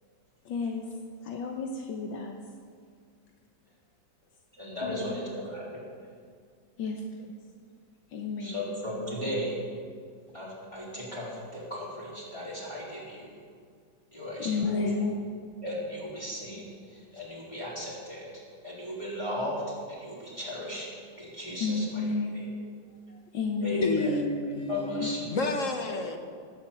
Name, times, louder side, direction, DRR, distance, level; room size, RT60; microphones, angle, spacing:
voice 1, 0.5-0.9 1.2-2.4 4.8-5.0 6.8-7.3 8.1-8.6 14.4-15.2 21.6-22.5 23.1-24.0, left 4 dB, 80° left, 1.8 m, -31 dB
voice 2, 4.6-5.7 8.4-9.6 10.3-13.3 14.1-14.9 15.6-18.2 18.6-19.6 19.9-20.9 21.2-22.1 22.3-22.5 23.6-24.2 24.7-25.2 25.9-26.0, left 1 dB, 15° left, 4.6 m, -36 dB
voice 3, 23.8-26.2, left 2 dB, 45° left, 1.5 m, -30 dB
18.5 x 7.4 x 8.6 m
omnidirectional pair, 2.1 m